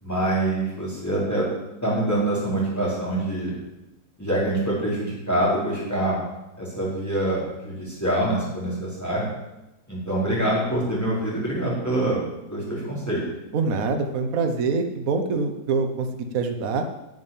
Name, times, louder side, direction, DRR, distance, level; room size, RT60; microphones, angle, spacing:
voice 1, 0.0-1.5 1.8-3.6 4.2-6.2 6.6-9.3 9.9-12.2 12.5-13.3, right 1 dB, 10° left, -7 dB, 4.8 m, -25 dB
voice 2, 13.5-16.8, right 4 dB, 60° right, 5 dB, 1.5 m, -25 dB
11.0 x 7.3 x 7.5 m, 0.97 s
omnidirectional pair, 1.8 m